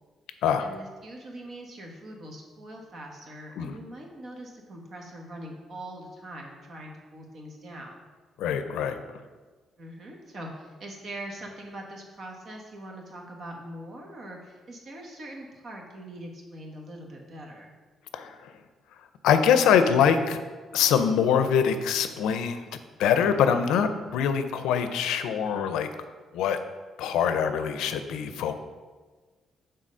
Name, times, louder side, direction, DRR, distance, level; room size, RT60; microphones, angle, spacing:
voice 1, 0.6-8.0 9.8-17.7, right 1 dB, 55° right, 0 dB, 1.4 m, -42 dB
voice 2, 8.4-9.0 18.1-18.5 19.2-20.4 20.7-22.6 23.0-25.9 26.3-26.6 27.0-28.5, left 7 dB, 90° left, 9 dB, 0.5 m, -24 dB
6.3 x 3.9 x 5.5 m, 1.4 s
cardioid pair, 90°, 0 cm